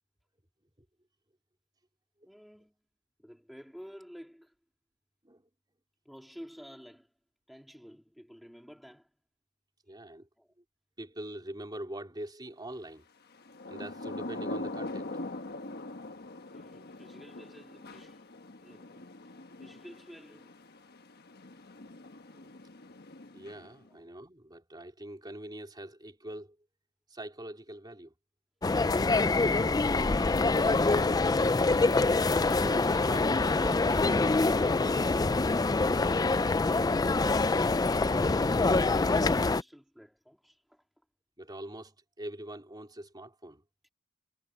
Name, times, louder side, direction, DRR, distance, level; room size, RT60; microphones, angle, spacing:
voice 1, 2.3-2.7 3.2-4.5 6.0-7.1 7.5-9.1 9.9-10.0 10.4-10.5 16.5-18.3 18.6-19.1 19.6-20.6 23.9-24.0 38.0-40.9 43.8-43.9, equal, ahead, 2.8 m, -51 dB
voice 2, 9.9-10.3 11.0-13.0 13.7-15.1 22.3-22.5 23.3-26.6 27.1-28.1 32.4-34.4 41.4-43.6, right 1 dB, 20° right, 3.7 m, -43 dB
Thunder / Rain, 13.3-23.9, left 2 dB, 45° left, 1.3 m, -42 dB
sound 1, 28.6-39.6, left 3 dB, 15° left, 0.4 m, -25 dB
head